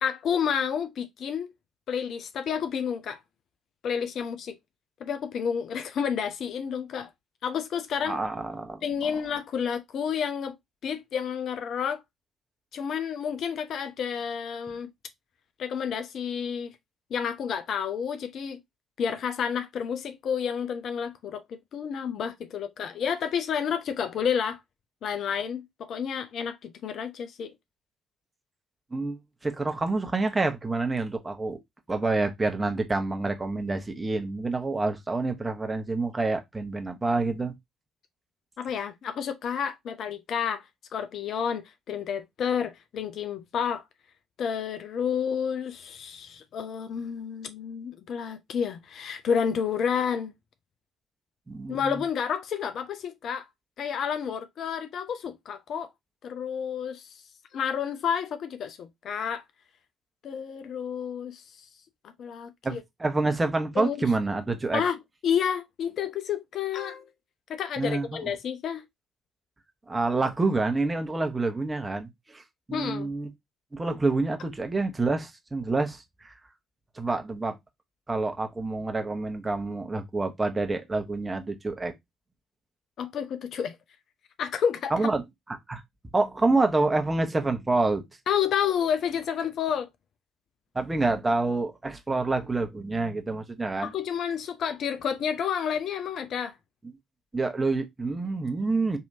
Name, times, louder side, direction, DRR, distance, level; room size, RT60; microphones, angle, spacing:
voice 1, 0.0-1.5 1.9-3.2 3.8-4.6 5.0-7.1 7.4-8.2 8.8-10.6 10.8-12.0 12.7-14.9 15.6-16.7 17.1-18.6 19.0-24.6 25.0-27.5 38.6-40.6 40.9-43.8 44.4-50.3 51.7-53.5 53.8-55.9 56.2-57.2 57.5-59.4 60.2-61.4 62.0-62.8 63.8-64.0 64.7-65.0 65.2-67.1 67.5-68.8 72.7-73.1 83.0-83.8 84.4-84.9 88.3-89.9 93.8-96.5, left 7 dB, 50° left, 0.5 m, -30 dB
voice 2, 8.0-9.2 28.9-31.6 31.9-37.5 51.5-52.0 62.6-64.8 67.8-68.2 69.9-72.4 72.7-73.3 73.7-76.3 77.0-77.6 78.1-81.9 84.9-85.2 85.7-85.8 86.1-88.0 90.7-93.9 97.3-99.0, right 3 dB, 20° right, 0.9 m, -27 dB
4.7 x 2.7 x 2.6 m
figure-of-eight pair, 45°, 0 cm